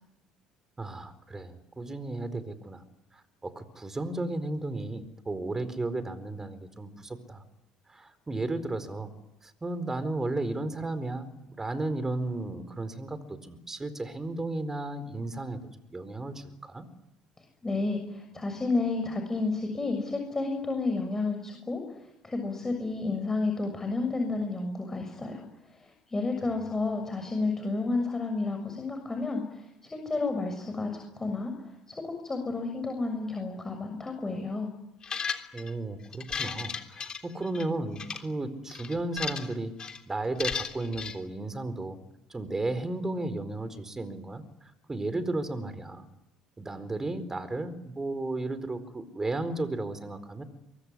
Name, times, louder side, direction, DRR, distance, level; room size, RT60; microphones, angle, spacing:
voice 1, 0.8-2.8 3.1-7.4 7.9-9.1 9.4-15.6 15.9-16.9 26.4-26.5 35.5-39.7 40.1-42.0 42.3-46.1 46.6-50.4, right 2 dB, 20° right, 12 dB, 4.4 m, -34 dB
voice 2, 17.6-25.4 25.7-31.5 31.9-34.7, left 3 dB, 20° left, 4 dB, 6.6 m, -31 dB
sound 1, 35.0-35.7 36.1-37.6 38.0-38.2 38.7-39.5 39.8-40.0 40.4-41.1, left 6 dB, 40° left, 3.4 m, -34 dB
24.0 x 22.5 x 10.0 m, 0.91 s
hypercardioid pair, 65°, 2 cm